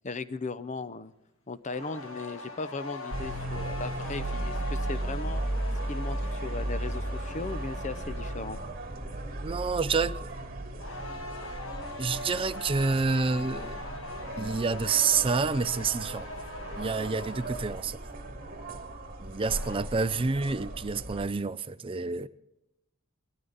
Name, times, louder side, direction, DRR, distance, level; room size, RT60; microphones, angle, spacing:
voice 1, 0.0-1.1 1.5-5.4 5.9-8.6, left 3 dB, 35° left, 0.6 m, -37 dB
sound 1, 1.7-8.9 10.8-17.9 19.1-19.8, left 2 dB, 60° left, 1.5 m, -41 dB
sound 2, 3.1-21.3, right 1 dB, 40° right, 2.4 m, -36 dB
voice 2, 9.4-10.2 12.0-13.8 14.4-16.3 16.8-18.0 19.2-22.3, right 4 dB, 25° right, 0.4 m, -28 dB
20.0 x 13.0 x 4.0 m
head